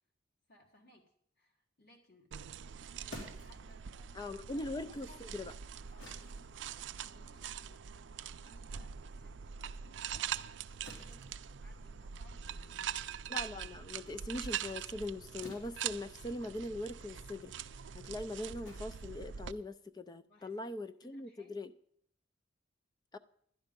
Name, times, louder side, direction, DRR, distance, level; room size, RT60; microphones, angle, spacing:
voice 1, 0.5-2.3 3.0-4.1 4.5-5.2 5.9-7.8 8.4-10.3 10.9-13.0 20.3-20.8 21.0-21.6, left 1 dB, 55° left, 1.6 m, -64 dB
sound 1, 2.3-19.5, right 8 dB, 70° right, 0.4 m, -43 dB
sound 2, 3.1-9.4 9.7-19.9, left 1 dB, 75° left, 3.6 m, -57 dB
voice 2, 4.1-5.1 5.3-5.5 13.3-17.5 17.9-21.7 23.1-23.2, left 1 dB, 20° left, 0.4 m, -41 dB
11.5 x 10.5 x 5.2 m
head